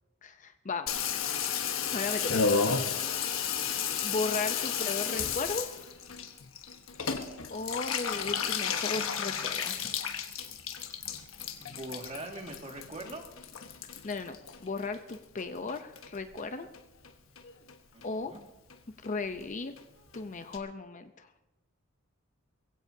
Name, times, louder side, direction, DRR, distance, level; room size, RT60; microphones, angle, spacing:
voice 1, 0.2-0.9 1.9-2.3 4.0-5.8 7.5-9.9 14.0-16.7 18.0-18.3 19.0-19.7 20.1-21.3, left 3 dB, 35° left, 8 dB, 0.7 m, -36 dB
Water tap faucet / Bathtub (filling or washing), 0.9-15.4 15.7-16.4 16.7-16.8 17.0-17.1 17.4-17.7 18.0-18.1 18.4-18.5 18.7-18.8 19.0-19.1 19.4-19.5 19.8-19.9 20.1-20.2 20.5-20.6, left 6 dB, 75° left, 1.3 m, -33 dB
voice 2, 11.6-13.3 17.9-18.4, right 2 dB, 35° right, 2 dB, 2.0 m, -42 dB
22.0 x 16.0 x 2.8 m, 0.98 s
head